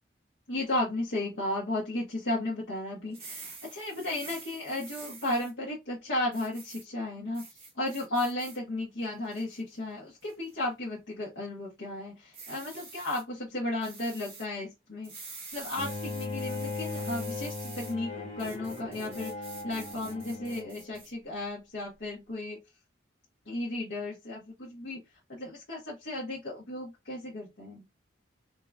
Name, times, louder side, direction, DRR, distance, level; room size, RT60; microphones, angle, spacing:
voice 1, 0.5-22.6 23.4-25.0 25.3-27.9, left 1 dB, 70° left, 1.2 m, -34 dB
sound 1, 3.1-5.5 6.3-6.8 7.3-8.6 9.0-9.6 10.2-10.5 12.3-13.2 13.8-14.4 15.0-17.9 18.4-21.1, right 4 dB, 30° right, 1.6 m, -47 dB
Bowed string instrument, 15.8-20.8, left 3 dB, 35° left, 1.0 m, -38 dB
4.5 x 2.9 x 2.4 m
head